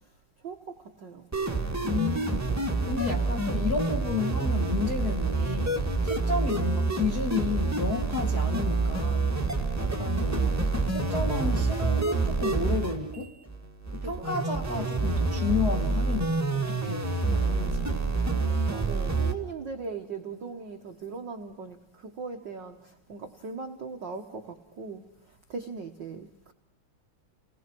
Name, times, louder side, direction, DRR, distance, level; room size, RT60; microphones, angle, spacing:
voice 1, 0.4-1.3 10.3-10.9 14.0-14.4 18.2-25.0 25.5-26.5, right 4 dB, 80° right, 1.0 m, -39 dB
sound 1, 1.3-19.3, right 3 dB, 10° right, 1.2 m, -27 dB
voice 2, 1.8-9.4 9.8-10.6 10.9-13.4 13.9-18.0, left 5 dB, 50° left, 1.1 m, -32 dB
29.5 x 19.5 x 6.1 m
omnidirectional pair, 4.0 m